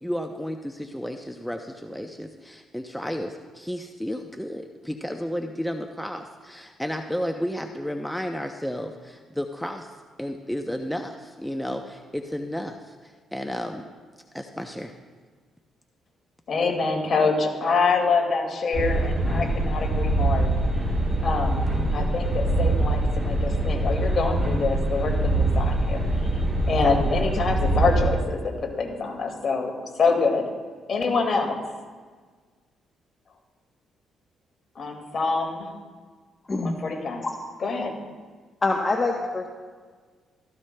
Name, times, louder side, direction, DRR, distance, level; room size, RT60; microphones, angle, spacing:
voice 1, 0.0-9.9 10.2-13.8 14.3-14.9, equal, 5° left, 4 dB, 0.6 m, -32 dB
voice 2, 16.5-20.5 21.2-21.6 21.9-26.0 26.7-29.7 30.0-30.5 30.9-31.6 34.8-35.7 36.6-37.2 37.6-37.9, left 4 dB, 50° left, 2 dB, 2.0 m, -25 dB
sound 1, 18.7-28.1, right 2 dB, 25° right, 3.3 m, -24 dB
voice 3, 38.6-39.5, left 3 dB, 30° left, 1 dB, 0.9 m, -25 dB
15.5 x 14.0 x 2.2 m, 1.5 s
cardioid pair, 90°, 0 cm